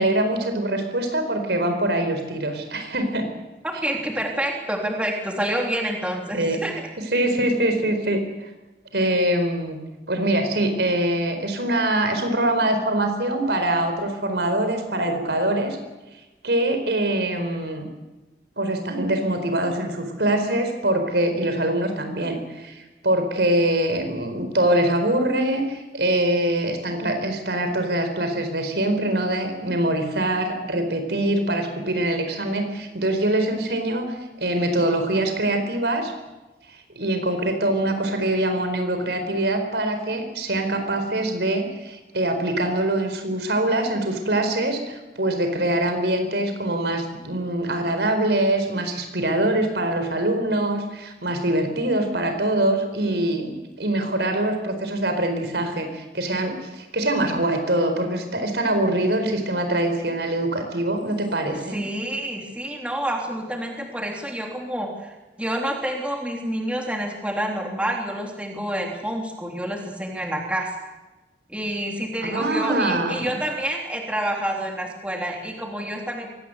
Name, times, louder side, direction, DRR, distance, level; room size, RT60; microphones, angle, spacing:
voice 1, 0.0-3.3 6.3-6.6 7.1-8.2 8.9-9.8 10.1-15.8 16.4-17.9 18.6-36.1 37.0-61.8 72.2-73.4, right 1 dB, 80° right, 6 dB, 4.5 m, -23 dB
voice 2, 3.6-6.8 61.4-70.8 71.5-76.3, right 1 dB, 5° right, 0 dB, 3.3 m, -28 dB
23.5 x 18.0 x 8.2 m, 1.1 s
head